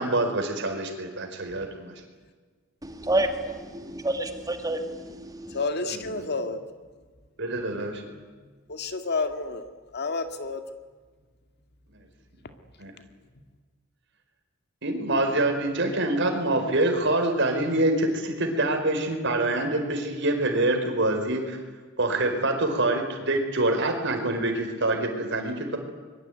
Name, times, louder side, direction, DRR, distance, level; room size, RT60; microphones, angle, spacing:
voice 1, 0.0-1.9 5.8-6.3 7.4-8.0 12.8-12.9 14.8-21.6 22.0-25.8, right 2 dB, 60° right, 4 dB, 4.9 m, -25 dB
voice 2, 2.8-5.6, right 1 dB, 15° right, 6 dB, 2.0 m, -29 dB
voice 3, 5.5-6.6 8.7-9.6 9.9-10.6, left 3 dB, 55° left, 7 dB, 2.3 m, -29 dB
25.0 x 22.5 x 9.5 m, 1.4 s
head